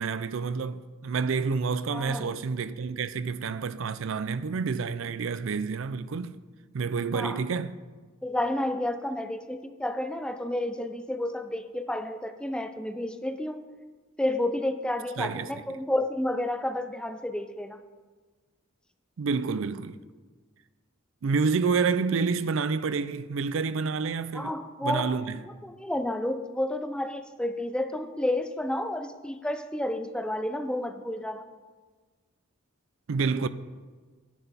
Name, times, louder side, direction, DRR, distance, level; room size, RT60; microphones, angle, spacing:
voice 1, 0.0-6.3 6.7-7.7 15.2-15.5 19.2-20.0 21.2-24.5 24.8-25.4 33.1-33.5, right 5 dB, 65° right, 0.4 m, -28 dB
voice 2, 1.9-2.4 7.1-7.4 8.2-13.6 14.2-17.8 24.3-25.1 25.5-31.5, left 1 dB, 5° left, 0.4 m, -31 dB
10.5 x 8.9 x 4.1 m
head